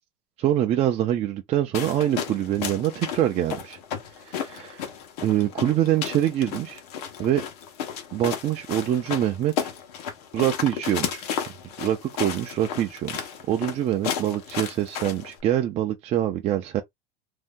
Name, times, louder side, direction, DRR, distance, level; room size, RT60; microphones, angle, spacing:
voice 1, 0.4-3.8 4.2-4.9 5.2-6.8 7.2-7.4 8.1-9.7 10.3-11.3 11.8-16.8, right 12 dB, 35° right, 0.4 m, -25 dB
sound 1, 1.7-15.4, left 8 dB, 85° left, 1.0 m, -33 dB
2.7 x 2.1 x 3.5 m
supercardioid pair, 130°, 20 cm